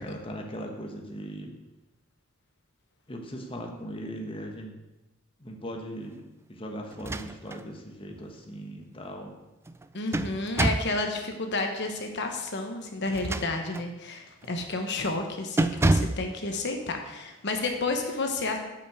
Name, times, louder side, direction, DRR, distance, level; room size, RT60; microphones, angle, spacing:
voice 1, 0.0-1.6 3.1-4.7 5.4-6.2 6.5-9.3, equal, 25° left, 2 dB, 1.1 m, -39 dB
sound 1, 6.9-7.7 8.1-8.2 9.7-11.0 13.0-13.9 14.4-14.7 15.0-15.2 15.6-16.3, right 2 dB, 10° right, 0.3 m, -27 dB
voice 2, 9.9-18.6, left 3 dB, 55° left, 4 dB, 1.1 m, -31 dB
8.3 x 5.7 x 7.9 m, 1.0 s
head